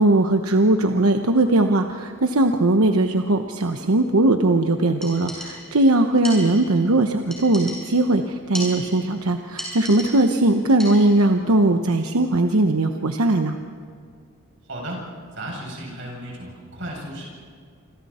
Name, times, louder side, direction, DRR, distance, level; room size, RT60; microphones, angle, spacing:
voice 1, 0.0-13.6, right 2 dB, 90° right, 5 dB, 1.0 m, -19 dB
sound 1, 5.0-5.9 6.2-6.9 7.3-8.1 8.5-9.2 9.6-10.4 10.8-11.3, equal, ahead, 6.8 m, -36 dB
voice 2, 14.7-15.0 15.3-17.3, right 1 dB, 60° right, -2 dB, 7.5 m, -34 dB
28.0 x 25.5 x 4.3 m, 2.3 s
head